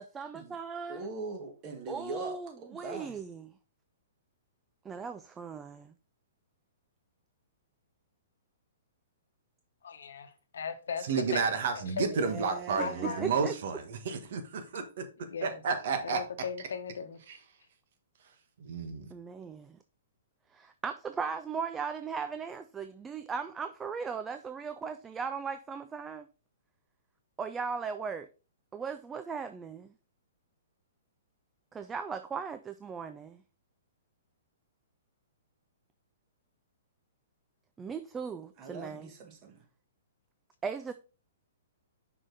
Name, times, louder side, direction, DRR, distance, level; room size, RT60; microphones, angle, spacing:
voice 1, 0.0-1.1 1.9-3.5 4.8-5.9 12.8-12.9 13.2-13.5 19.1-19.8 20.5-26.3 27.4-28.3 28.7-29.9 31.7-33.4 37.8-39.1 40.6-40.9, right 5 dB, 10° right, 0.3 m, -38 dB
voice 2, 0.9-3.2 12.1-13.3 38.6-39.6, right 4 dB, 30° right, 1.6 m, -41 dB
voice 3, 9.8-12.3 12.7-13.4 15.2-15.6 16.0-17.2, left 6 dB, 85° left, 1.1 m, -38 dB
voice 4, 11.0-15.0 15.4-16.2 17.3-17.4 18.6-19.1, right 5 dB, 60° right, 1.4 m, -31 dB
6.0 x 4.9 x 3.9 m
hypercardioid pair, 150°, 0 cm